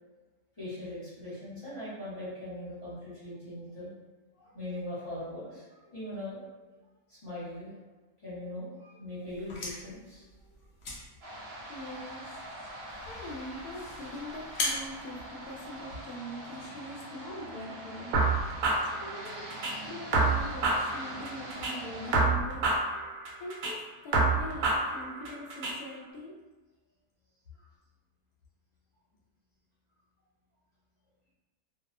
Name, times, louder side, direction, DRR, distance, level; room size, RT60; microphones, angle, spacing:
voice 1, 0.6-3.9 4.3-6.4 7.1-7.8 8.2-10.6, left 1 dB, 25° left, -12 dB, 0.7 m, -40 dB
sound 1, 9.2-16.1, left 2 dB, 60° left, 0.7 m, -40 dB
sound 2, 11.2-22.2, right 1 dB, 55° right, 0.6 m, -44 dB
voice 2, 11.7-12.4 13.1-18.1 18.8-19.5 19.8-22.8 23.4-26.4, left 1 dB, 80° left, -1 dB, 1.0 m, -42 dB
sound 3, 18.1-19.7 20.1-21.7 22.1-23.7 24.1-25.7, right 3 dB, 75° right, 1.0 m, -28 dB
2.6 x 2.1 x 2.4 m, 1.2 s
omnidirectional pair, 1.6 m